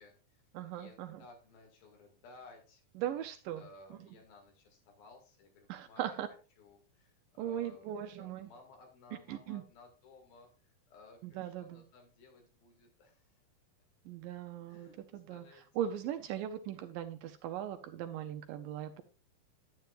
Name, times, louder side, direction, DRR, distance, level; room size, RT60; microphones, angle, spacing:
voice 1, 0.0-0.4 0.7-2.8 3.1-3.3 3.6-6.2 6.6-13.4 14.7-15.0 15.3-15.7, left 3 dB, 75° left, 2 dB, 4.0 m, -58 dB
voice 2, 0.5-1.2 3.0-3.6 3.9-4.1 5.7-6.3 7.4-8.5 9.3-9.6 11.2-11.8 14.1-19.0, right 10 dB, 80° right, 9 dB, 2.2 m, -39 dB
10.5 x 9.5 x 2.5 m, 0.34 s
omnidirectional pair, 4.3 m